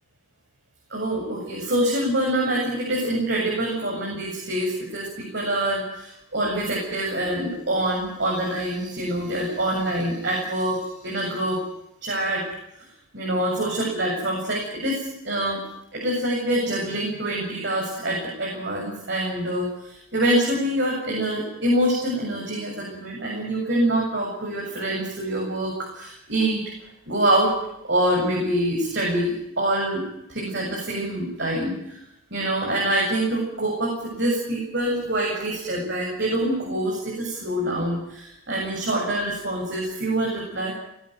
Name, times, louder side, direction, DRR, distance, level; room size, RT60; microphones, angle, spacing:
voice 1, 0.9-11.6 12.0-12.4 13.1-15.6 15.9-26.6 27.1-27.5 27.8-30.0 30.3-32.0 32.3-40.7, right 1 dB, 55° right, -2 dB, 7.7 m, -25 dB
21.0 x 16.5 x 9.4 m, 0.82 s
head